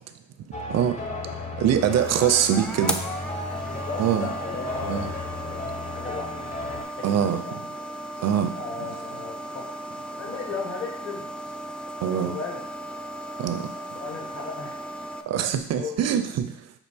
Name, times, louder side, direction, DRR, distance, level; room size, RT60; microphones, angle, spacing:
sound 1, 0.5-6.8, left 2 dB, 25° left, 0.8 m, -35 dB
voice 1, 0.8-2.3 3.5-6.4 6.9-7.6 8.5-9.7 10.2-11.3 12.0-12.6 13.9-14.8 15.4-16.1, left 4 dB, 45° left, -3 dB, 1.2 m, -37 dB
sound 2, 1.6-15.2, equal, 5° left, 0.4 m, -36 dB
voice 2, 1.6-3.0 4.0-4.3 4.9-5.1 7.0-7.4 8.2-8.5 12.0-12.3 13.4-13.7 15.3-16.7, right 9 dB, 60° right, 9 dB, 0.5 m, -23 dB
5.9 x 2.4 x 3.4 m, 0.71 s
cardioid pair, 90°, 30 cm